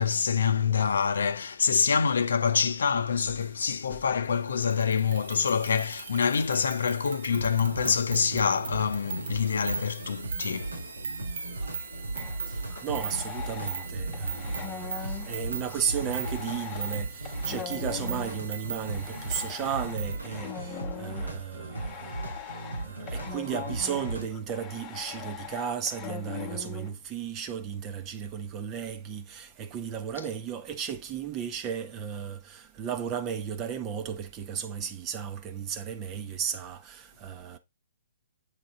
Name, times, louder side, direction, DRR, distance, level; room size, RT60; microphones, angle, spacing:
voice 1, 0.0-10.8, left 6 dB, 70° left, 0.7 m, -26 dB
sound 1, 4.6-20.3, right 6 dB, 65° right, 1.3 m, -40 dB
sound 2, 7.3-24.3, right 2 dB, 90° right, 3.9 m, -37 dB
voice 2, 11.4-11.9 12.5-22.2 22.8-37.6, right 8 dB, 25° right, 1.0 m, -34 dB
sound 3, 12.1-13.9 14.1-26.9, left 8 dB, 25° left, 0.9 m, -41 dB
8.2 x 4.0 x 3.7 m
figure-of-eight pair, 130°, 0 cm